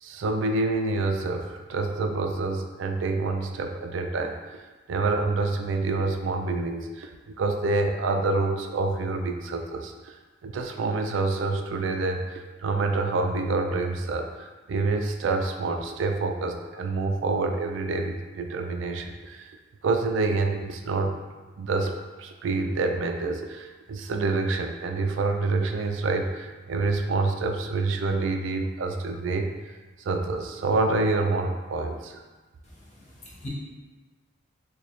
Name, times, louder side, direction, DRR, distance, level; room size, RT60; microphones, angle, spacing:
voice 1, 0.0-4.4 4.9-10.1 10.4-14.3 14.7-19.5 19.8-21.2 21.6-29.5 30.0-32.2, right 3 dB, 70° right, 5 dB, 0.3 m, -27 dB
voice 2, 32.6-33.5, equal, 35° left, -6 dB, 0.9 m, -44 dB
3.1 x 2.3 x 4.0 m, 1.2 s
head